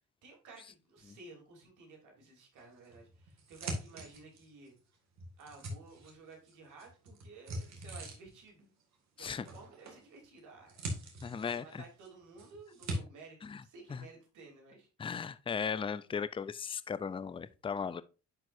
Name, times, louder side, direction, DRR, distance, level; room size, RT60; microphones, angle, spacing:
voice 1, 0.2-4.7 5.4-8.7 9.2-10.8 11.5-15.1, right 3 dB, 80° right, 3.1 m, -54 dB
sound 1, 2.8-4.7 5.1-6.5 6.8-8.5 9.4-10.0 10.4-12.1 12.4-13.0, right 1 dB, 60° right, 2.2 m, -42 dB
voice 2, 11.2-11.8 13.4-13.6 13.9-14.1 15.0-18.0, left 6 dB, 20° left, 0.4 m, -37 dB
10.5 x 4.5 x 2.6 m
cardioid pair, 90°, 30 cm